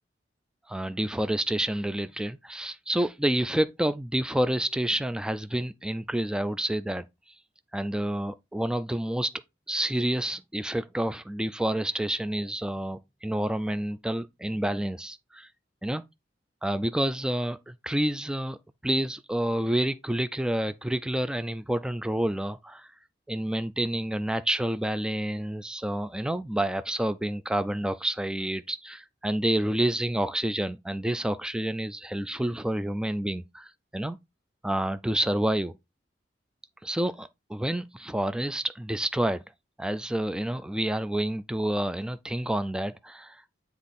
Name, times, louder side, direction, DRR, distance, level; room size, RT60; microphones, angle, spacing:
voice 1, 0.7-7.0 7.7-9.3 9.7-15.5 15.8-16.0 16.6-18.6 18.8-22.9 23.3-34.2 34.6-35.8 36.8-39.4 39.8-43.4, right 1 dB, 5° right, 0.3 m, -29 dB
9.5 x 3.5 x 4.1 m
head